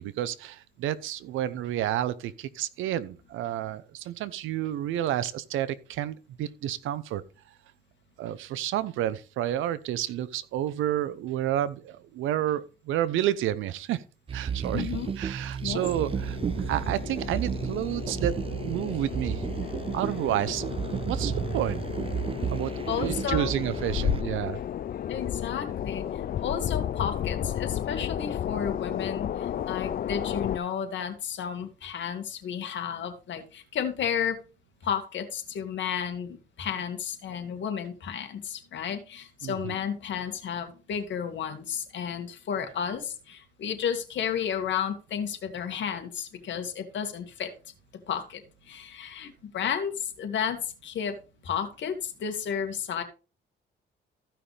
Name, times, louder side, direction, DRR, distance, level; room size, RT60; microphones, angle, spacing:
voice 1, 0.0-7.2 8.2-14.0 14.3-14.9 15.2-16.4 16.7-19.4 19.9-20.6 21.0-21.8 22.5-24.6 39.4-39.7, right 12 dB, 90° right, 0.8 m, -30 dB
sound 1, 14.3-24.2, right 7 dB, 30° right, 0.4 m, -32 dB
voice 2, 14.7-15.1 15.6-15.8 22.9-23.5 25.1-34.4 34.8-47.5 48.1-48.4 48.7-51.2 51.4-53.0, left 8 dB, 70° left, 2.2 m, -32 dB
sound 2, 15.7-30.6, left 10 dB, 50° left, 0.5 m, -33 dB
15.0 x 5.8 x 3.5 m
cardioid pair, 90°, 20 cm